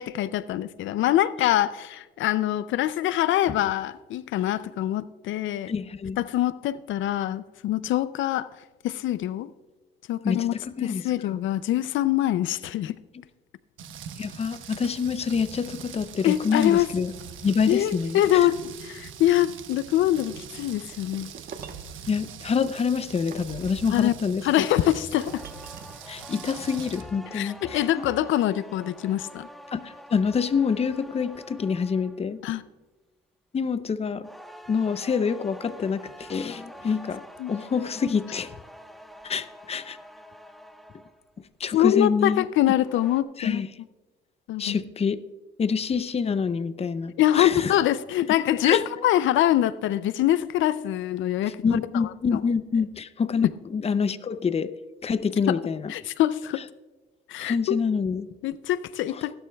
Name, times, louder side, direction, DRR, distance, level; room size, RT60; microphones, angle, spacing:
voice 1, 0.0-5.7 6.2-8.5 8.8-9.5 10.1-10.5 10.8-12.9 16.2-16.9 17.7-21.3 23.9-24.2 24.4-25.4 27.3-29.5 32.4-32.6 37.4-37.5 41.7-43.6 44.5-44.8 47.2-52.4 53.4-53.5 55.5-55.6 55.9-56.6 57.3-57.8 58.4-59.3, left 13 dB, 75° left, 16 dB, 0.4 m, -24 dB
voice 2, 5.7-6.2 10.2-11.0 14.2-17.1 17.4-18.5 22.1-24.7 26.1-27.8 29.7-32.4 33.5-34.3 34.7-38.5 39.2-40.0 41.6-42.5 43.4-43.7 44.6-45.2 45.6-47.8 48.6-48.8 51.6-54.7 55.0-55.9 57.4-58.3 59.1-59.2, left 6 dB, 30° left, 14 dB, 0.6 m, -26 dB
Rain, 13.8-27.0, right 7 dB, 80° right, 1.1 m, -42 dB
sound 1, 20.9-21.9 22.6-24.2 24.6-26.0, right 6 dB, 50° right, 1.1 m, -45 dB
sound 2, 25.1-32.3 34.2-41.3 42.6-43.2, equal, ahead, 1.1 m, -46 dB
16.5 x 12.0 x 2.3 m, 1.2 s
cardioid pair, 90°, 20 cm